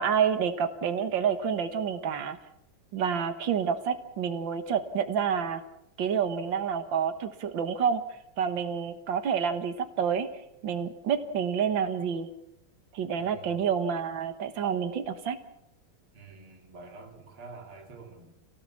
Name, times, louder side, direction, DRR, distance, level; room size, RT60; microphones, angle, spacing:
voice 1, 0.0-2.4 2.9-5.6 6.0-8.0 8.4-10.3 10.6-12.3 12.9-15.4, right 7 dB, 65° right, 9 dB, 2.1 m, -28 dB
voice 2, 13.2-13.6 16.1-18.3, right 3 dB, 80° right, 2 dB, 4.2 m, -47 dB
27.5 x 17.5 x 7.2 m, 0.83 s
omnidirectional pair, 2.3 m